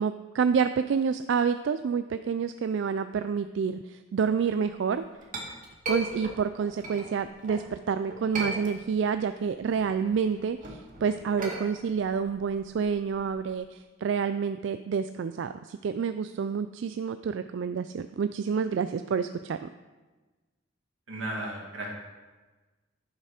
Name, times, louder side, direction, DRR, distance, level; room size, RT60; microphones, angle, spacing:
voice 1, 0.0-5.0 5.9-19.7, right 6 dB, 65° right, 10 dB, 0.3 m, -28 dB
Chink clink, 4.8-7.7 8.1-9.1 9.5-13.6, right 2 dB, 45° right, 1.9 m, -38 dB
voice 2, 21.1-21.9, right 1 dB, 90° right, -2 dB, 2.5 m, -34 dB
11.0 x 6.6 x 5.0 m, 1.2 s
head